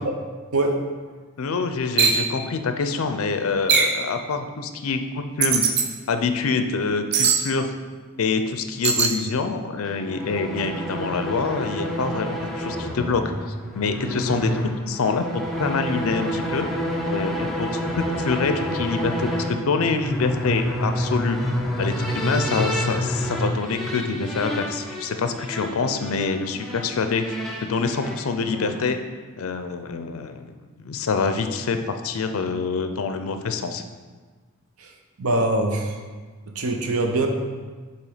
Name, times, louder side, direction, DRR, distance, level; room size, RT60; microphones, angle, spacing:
voice 1, 1.4-5.6 6.1-7.7 8.2-13.3 13.7-16.7 17.1-21.4 21.7-27.2 27.6-29.0 29.4-30.4 30.8-31.8 32.0-33.8, left 4 dB, 70° left, 8 dB, 0.5 m, -26 dB
sound 1, 2.0-2.2 3.7-4.0 5.4-5.9 7.1-7.4 8.8-9.1, right 6 dB, 50° right, 0.6 m, -19 dB
sound 2, 9.9-28.9, equal, ahead, 0.6 m, -29 dB
voice 2, 35.2-36.0 36.5-37.3, right 2 dB, 90° right, 4 dB, 0.8 m, -22 dB
6.8 x 2.9 x 4.9 m, 1.4 s
head